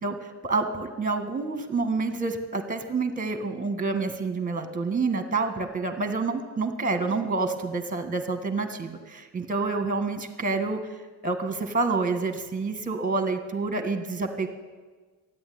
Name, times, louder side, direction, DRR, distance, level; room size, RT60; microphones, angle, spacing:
voice 1, 0.0-10.9 11.2-14.5, right 3 dB, 20° right, 7 dB, 1.6 m, -28 dB
13.5 x 9.4 x 9.4 m, 1.4 s
wide cardioid pair, 130°, 42 cm